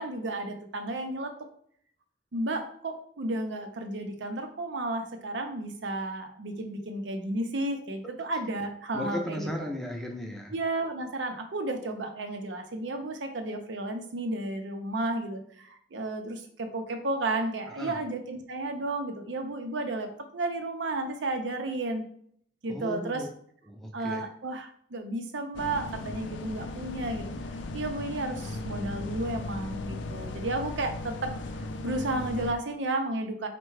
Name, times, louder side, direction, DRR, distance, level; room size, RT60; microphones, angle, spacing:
voice 1, 0.0-1.3 2.3-9.5 10.5-22.1 22.6-23.3 23.9-27.3 27.7-31.3 31.8-33.5, right 2 dB, 80° right, 5 dB, 0.6 m, -32 dB
voice 2, 8.9-10.5 17.7-18.0 22.7-23.3 23.7-24.3, left 1 dB, ahead, 1 dB, 0.6 m, -36 dB
sound 1, 25.5-32.5, left 2 dB, 80° left, 0.4 m, -37 dB
4.6 x 2.2 x 4.6 m, 0.64 s
head